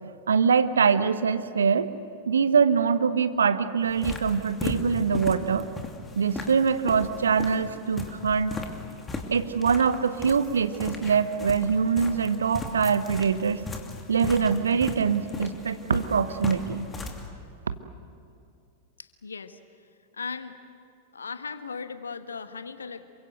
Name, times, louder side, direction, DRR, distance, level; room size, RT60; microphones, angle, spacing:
voice 1, 0.0-1.9 2.3-5.7 6.2-8.5 9.3-13.6 14.1-16.9, right 6 dB, 70° right, 12 dB, 1.0 m, -23 dB
sound 1, 3.8-17.2, left 2 dB, 15° left, 2.7 m, -37 dB
voice 2, 19.0-19.6 20.1-20.6 21.1-23.1, left 5 dB, 75° left, 11 dB, 1.2 m, -37 dB
27.5 x 24.0 x 8.0 m, 2.5 s
figure-of-eight pair, 90°, 0 cm